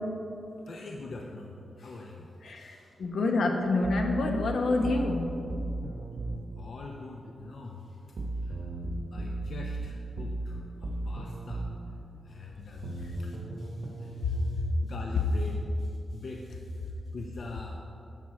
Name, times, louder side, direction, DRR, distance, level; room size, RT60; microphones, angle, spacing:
voice 1, 0.7-2.9 6.1-6.2 6.5-8.0 8.4-8.8 9.1-11.7 12.2-17.8, left 3 dB, 50° left, 0 dB, 0.6 m, -44 dB
voice 2, 2.4-5.3 12.1-12.2 13.0-13.1 14.2-14.6, left 2 dB, 70° left, 2 dB, 0.9 m, -28 dB
sound 1, 3.8-6.4 8.2-11.8 12.8-14.5, right 2 dB, 50° right, 1.0 m, -35 dB
11.0 x 7.6 x 4.2 m, 2.9 s
wide cardioid pair, 175°, 0 cm